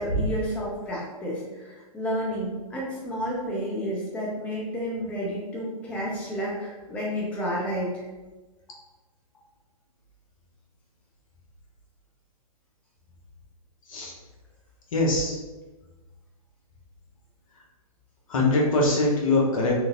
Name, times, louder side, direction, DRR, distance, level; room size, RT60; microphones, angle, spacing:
voice 1, 0.0-8.1, equal, 5° left, -5 dB, 0.4 m, -31 dB
voice 2, 14.9-15.4 18.3-19.7, left 2 dB, 60° left, -2 dB, 0.8 m, -22 dB
3.0 x 2.5 x 2.5 m, 1.2 s
figure-of-eight pair, 115°, 19 cm